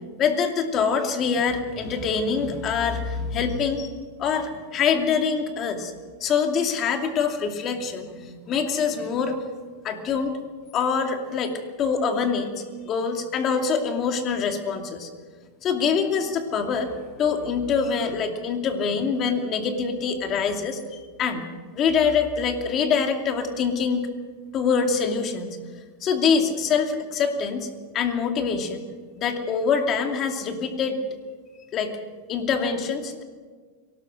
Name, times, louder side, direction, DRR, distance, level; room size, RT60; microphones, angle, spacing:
voice 1, 0.2-3.9 4.2-5.9 6.2-9.4 9.8-10.3 10.7-11.5 11.8-12.5 12.8-15.1 15.6-21.4 21.7-24.1 24.5-25.6 26.0-27.7 27.9-28.8 29.2-31.0 31.7-32.0 32.3-33.2, left 6 dB, 30° left, 5 dB, 2.6 m, -24 dB
23.0 x 18.5 x 6.5 m, 1.5 s
supercardioid pair, 140°, 0 cm